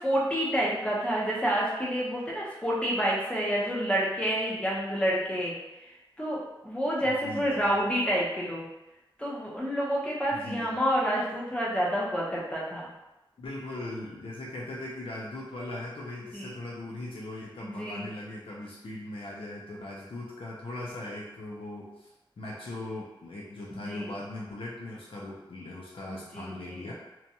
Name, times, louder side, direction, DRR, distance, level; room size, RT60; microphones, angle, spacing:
voice 1, 0.0-5.5 5.8-8.7 9.2-12.9 16.3-16.5 17.6-18.1 23.7-24.2 26.1-26.9, equal, 10° left, -6 dB, 0.7 m, -29 dB
voice 2, 7.0-7.7 10.3-10.7 13.4-22.1 22.4-26.9, left 1 dB, 85° left, -4 dB, 0.4 m, -39 dB
2.7 x 2.2 x 2.7 m, 0.99 s
wide cardioid pair, 95°, 9 cm